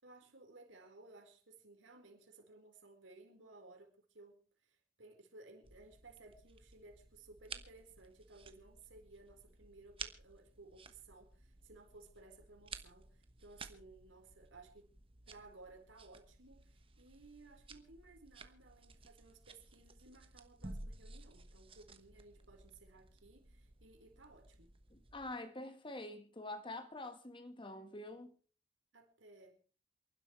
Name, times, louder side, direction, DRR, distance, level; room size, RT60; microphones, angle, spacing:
voice 1, 0.0-14.9 15.3-24.8 28.9-29.6, right 3 dB, 75° right, 4.3 m, -59 dB
sound 1, 5.6-25.3, right 4 dB, 30° right, 1.1 m, -54 dB
voice 2, 24.9-28.3, left 2 dB, 25° left, 1.5 m, -46 dB
28.5 x 12.0 x 3.2 m
head